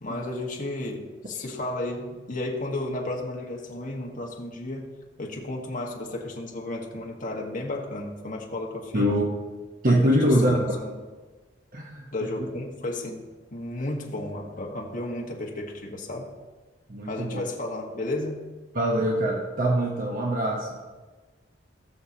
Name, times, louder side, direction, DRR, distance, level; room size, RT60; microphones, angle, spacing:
voice 1, 0.0-4.9 5.2-9.2 9.9-10.0 10.2-10.9 12.1-13.2 13.5-16.3 17.0-18.4, left 2 dB, 45° left, -1 dB, 1.4 m, -33 dB
voice 2, 8.9-9.3 9.8-10.8 11.7-12.3 16.9-17.4 18.7-20.8, right 1 dB, 45° right, -1 dB, 1.0 m, -24 dB
19.0 x 6.4 x 2.8 m, 1.3 s
head